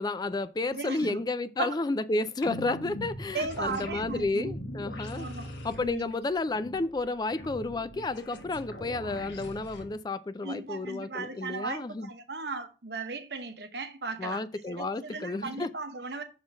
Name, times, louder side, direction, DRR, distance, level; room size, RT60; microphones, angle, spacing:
voice 1, 0.0-5.3 5.6-12.1 14.2-15.7, left 2 dB, 25° left, 0.3 m, -31 dB
voice 2, 0.7-1.2 1.6-1.7 3.3-4.5 5.1-5.5 5.8-6.0 10.4-16.2, right 3 dB, 65° right, 0.9 m, -36 dB
sound 1, 2.4-9.9, left 1 dB, 80° left, 1.5 m, -41 dB
6.3 x 3.7 x 6.1 m
head